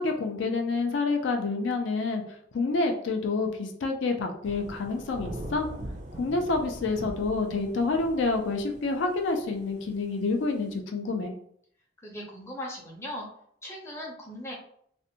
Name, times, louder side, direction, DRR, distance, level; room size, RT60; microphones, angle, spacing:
voice 1, 0.0-2.2 2.5-5.7 6.2-11.3, left 3 dB, 80° left, 3 dB, 0.4 m, -28 dB
Thunder / Rain, 4.4-10.8, right 1 dB, 40° right, 0.3 m, -41 dB
voice 2, 12.0-13.3 13.6-14.5, left 1 dB, 15° left, -3 dB, 0.5 m, -38 dB
2.6 x 2.1 x 2.7 m, 0.66 s
head